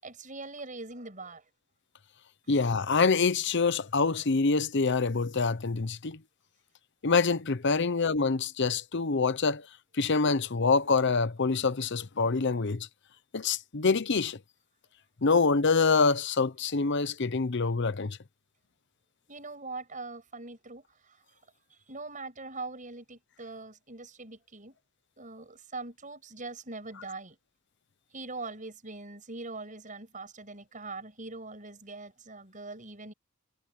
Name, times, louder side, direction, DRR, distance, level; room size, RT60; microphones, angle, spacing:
voice 1, 0.0-1.4 19.3-21.2 21.7-24.7 25.2-27.4 28.1-33.1, right 3 dB, 40° right, 6.7 m, -42 dB
voice 2, 2.5-6.2 7.0-9.7 9.9-12.9 13.3-14.4 15.2-18.2, left 4 dB, 60° left, 0.8 m, -26 dB
head